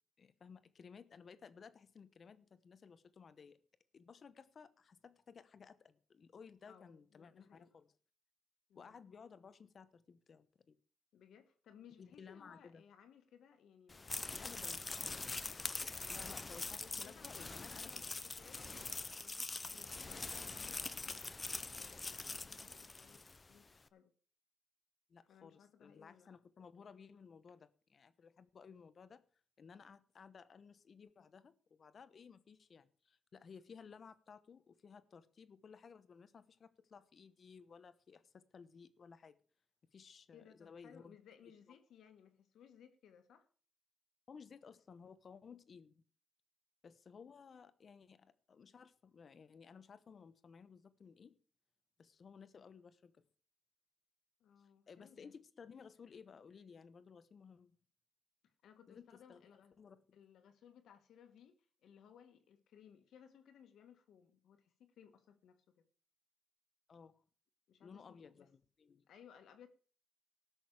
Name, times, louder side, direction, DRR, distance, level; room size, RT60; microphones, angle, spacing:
voice 1, 0.2-3.6 3.9-7.9 8.7-10.8 12.0-12.8 14.4-14.8 16.1-18.0 25.1-29.2 29.6-39.4 39.9-41.1 44.3-46.0 46.8-51.4 52.0-53.2 54.9-57.8 58.9-59.4 59.8-60.0 66.9-67.2 67.8-69.0, left 6 dB, 45° left, 1.0 m, -57 dB
voice 2, 6.7-7.7 8.7-9.0 11.1-15.4 17.0-23.2 23.5-24.1 25.3-26.3 40.3-43.5 54.4-55.3 58.6-59.8 60.1-65.8 67.7-68.5 69.1-69.7, left 8 dB, 80° left, 1.8 m, -62 dB
sound 1, 13.9-23.4, left 3 dB, 25° left, 0.6 m, -44 dB
18.5 x 6.3 x 4.9 m
cardioid pair, 130°, 0 cm